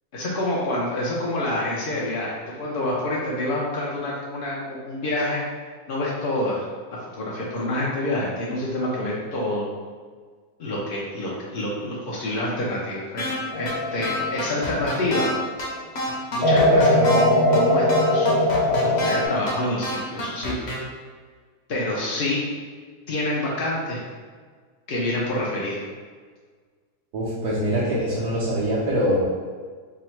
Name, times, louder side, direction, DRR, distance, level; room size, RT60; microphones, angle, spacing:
voice 1, 0.1-5.4 5.9-6.7 7.1-9.6 10.6-15.3 16.3-18.4 18.8-20.6 21.7-22.4 23.1-24.0 24.9-25.8, left 1 dB, 70° left, -5 dB, 0.5 m, -27 dB
sound 1, 13.2-13.4 13.7-13.8 14.0-15.3 15.6-15.7 16.0-17.2 17.5-17.6 17.9-19.2 19.5-19.6 19.8-20.8, left 1 dB, 50° left, 0.9 m, -28 dB
sound 2, 13.5-15.3 16.4-19.3, left 1 dB, 85° left, 1.4 m, -20 dB
voice 2, 27.1-29.3, equal, 85° right, -7 dB, 1.3 m, -23 dB
3.6 x 2.0 x 4.3 m, 1.6 s
omnidirectional pair, 1.8 m